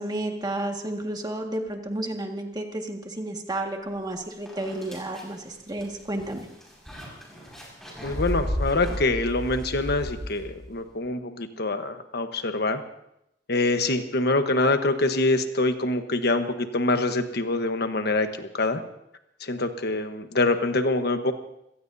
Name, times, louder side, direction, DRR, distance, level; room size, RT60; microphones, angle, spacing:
voice 1, 0.0-6.5, right 1 dB, 20° right, 2 dB, 1.8 m, -31 dB
sound 1, 4.0-4.1 4.5-10.8, equal, ahead, 5.7 m, -34 dB
voice 2, 8.0-12.8 13.5-18.8 19.4-21.3, left 2 dB, 60° left, 8 dB, 1.2 m, -25 dB
26.0 x 18.0 x 2.7 m, 0.81 s
head